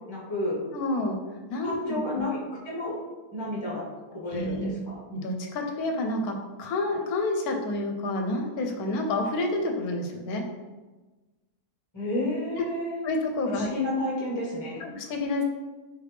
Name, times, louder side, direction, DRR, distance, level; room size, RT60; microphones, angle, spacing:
voice 1, 0.1-0.6 1.6-2.4 2.6-3.0 3.3-3.8 4.1-5.0 11.9-13.0 13.5-14.8, left 2 dB, 20° left, -6 dB, 0.8 m, -31 dB
voice 2, 0.7-1.2 1.5-2.0 4.3-4.7 5.1-10.4 13.0-13.7 14.8-15.4, left 2 dB, 75° left, 3 dB, 1.0 m, -29 dB
3.7 x 3.3 x 3.2 m, 1.2 s
omnidirectional pair, 1.7 m